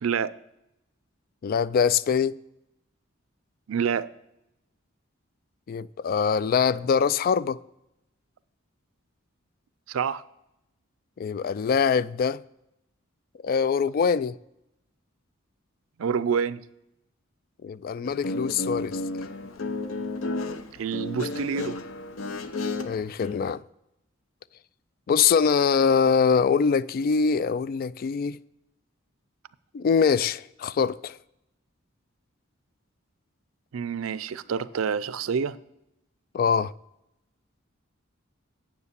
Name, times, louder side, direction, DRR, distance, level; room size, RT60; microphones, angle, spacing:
voice 1, 0.0-0.4 3.7-4.1 9.9-10.2 16.0-16.6 20.8-21.8 33.7-35.6, right 6 dB, 85° right, 0.4 m, -27 dB
voice 2, 1.4-2.3 5.7-7.6 11.2-12.4 13.4-14.3 17.6-19.0 22.8-23.6 25.1-28.4 29.7-31.2 36.3-36.7, left 6 dB, 45° left, 0.3 m, -23 dB
Guitar, 18.1-23.4, left 2 dB, 75° left, 0.7 m, -32 dB
9.6 x 7.4 x 6.8 m
head